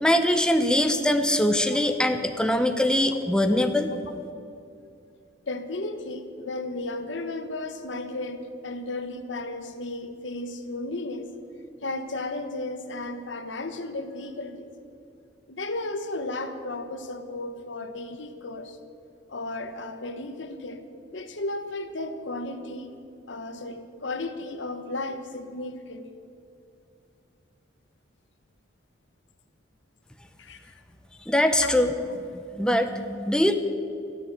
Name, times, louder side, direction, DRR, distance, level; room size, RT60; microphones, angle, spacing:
voice 1, 0.0-3.9 31.3-31.9 32.3-33.5, left 1 dB, 5° left, 7 dB, 0.7 m, -22 dB
voice 2, 5.5-11.3 11.8-14.7 15.5-18.8 19.3-20.8 21.1-23.0 23.3-26.1 30.4-30.7 31.6-31.7, left 2 dB, 75° left, 9 dB, 1.2 m, -34 dB
13.5 x 10.5 x 9.0 m, 2.5 s
head